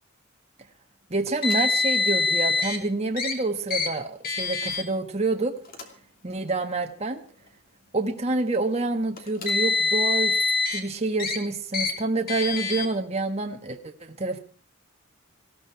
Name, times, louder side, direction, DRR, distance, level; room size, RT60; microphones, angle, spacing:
voice 1, 1.1-5.5 6.2-7.2 7.9-10.4 10.7-14.4, right 2 dB, 30° right, 4 dB, 1.4 m, -27 dB
Car, 1.4-2.8 3.2-3.3 3.7-3.9 4.2-4.8 5.6-5.8 6.8-6.9 9.2-10.8 11.2-11.4 11.7-11.9 12.3-12.9, left 3 dB, 45° left, 2.9 m, -25 dB
19.5 x 15.5 x 4.7 m, 0.41 s
head